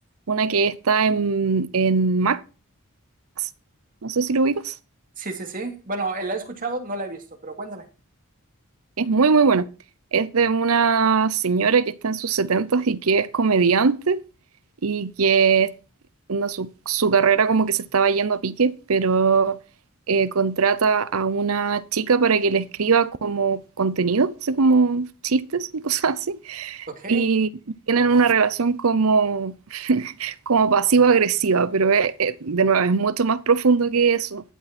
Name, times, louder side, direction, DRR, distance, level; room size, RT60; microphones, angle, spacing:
voice 1, 0.3-2.4 3.4-3.5 4.0-4.7 9.0-9.7 10.1-14.2 14.8-15.7 16.3-19.6 20.1-27.5 27.9-34.5, right 5 dB, 75° right, 0.7 m, -21 dB
voice 2, 5.2-7.8 26.9-27.2, right 2 dB, 40° right, 2.6 m, -30 dB
14.5 x 9.3 x 4.3 m
head